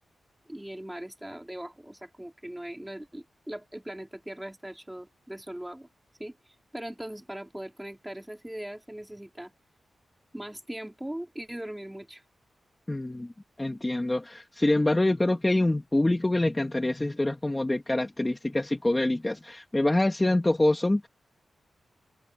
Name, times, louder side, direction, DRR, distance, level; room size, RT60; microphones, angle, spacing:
voice 1, 0.5-5.9 6.2-6.4 6.7-9.5 10.3-12.2, right 1 dB, 5° right, 3.4 m, -40 dB
voice 2, 12.9-13.3 13.6-21.1, left 1 dB, 15° left, 1.8 m, -25 dB
wide cardioid pair, 165°, 0 cm